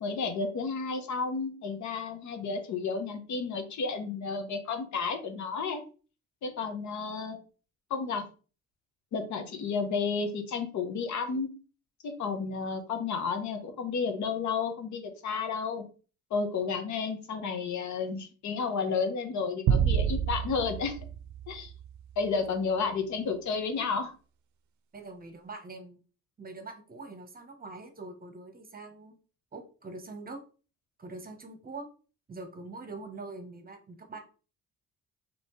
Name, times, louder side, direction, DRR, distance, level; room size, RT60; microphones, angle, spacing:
voice 1, 0.0-5.8 6.4-7.4 7.9-8.2 9.1-11.5 12.0-15.9 16.3-21.0 21.5-21.7 22.2-24.1, left 5 dB, 70° left, 7 dB, 1.0 m, -32 dB
sound 1, 19.7-22.3, right 8 dB, 70° right, 0.5 m, -29 dB
voice 2, 24.9-26.0 26.4-29.1 29.5-30.4 31.0-31.9 32.3-34.2, right 3 dB, 30° right, 6 dB, 1.0 m, -43 dB
4.2 x 3.1 x 3.1 m, 0.36 s
cardioid pair, 90°, 30 cm